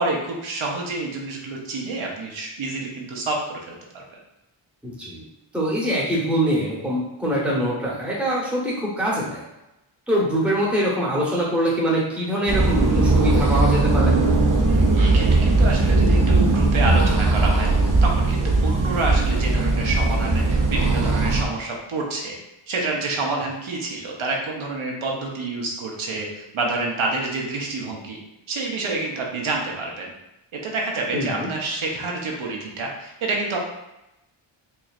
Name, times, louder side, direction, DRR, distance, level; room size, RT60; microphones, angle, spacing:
voice 1, 0.0-4.0 14.7-17.7 18.0-22.4 22.7-28.2 28.5-30.1 30.6-33.6, right 3 dB, 75° right, -1 dB, 0.8 m, -28 dB
voice 2, 4.8-5.2 5.5-9.4 10.1-14.2 31.1-31.5, equal, 5° right, -5 dB, 0.9 m, -23 dB
sound 1, 12.5-21.4, right 2 dB, 40° right, 0.6 m, -19 dB
4.4 x 3.1 x 2.4 m, 0.91 s
wide cardioid pair, 175°, 49 cm